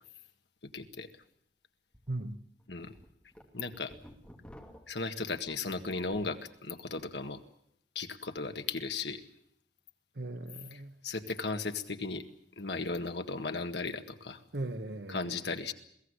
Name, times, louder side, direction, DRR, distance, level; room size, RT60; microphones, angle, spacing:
voice 1, 0.7-1.1 2.7-2.9 3.5-3.9 4.9-7.4 8.0-9.2 10.7-12.2 12.6-14.4 15.1-15.7, left 3 dB, 75° left, 1.8 m, -36 dB
sound 1, 0.8-0.9 1.3-1.4 1.9-2.1 2.6-6.4 6.8-7.2, equal, 5° left, 2.6 m, -54 dB
voice 2, 2.1-2.4 10.1-11.0 14.5-15.4, right 2 dB, 70° right, 1.4 m, -38 dB
22.0 x 16.5 x 9.9 m
head